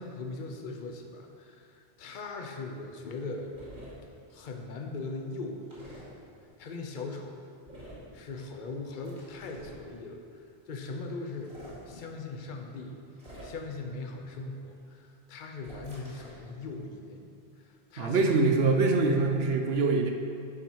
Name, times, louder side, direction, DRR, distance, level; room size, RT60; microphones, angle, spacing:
voice 1, 0.0-3.5 4.3-6.0 6.6-7.4 8.1-11.6 11.9-13.0 13.4-17.3 17.6-18.9, left 3 dB, 55° left, 3 dB, 0.9 m, -40 dB
sound 1, 3.5-3.9 5.7-6.0 7.7-8.1 9.0-9.8 11.3-11.8 13.2-13.8 15.6-16.4, right 1 dB, 50° right, 2.7 m, -48 dB
voice 2, 18.0-20.1, right 3 dB, 75° right, 4 dB, 0.9 m, -24 dB
9.6 x 5.8 x 4.6 m, 2.3 s
omnidirectional pair, 1.1 m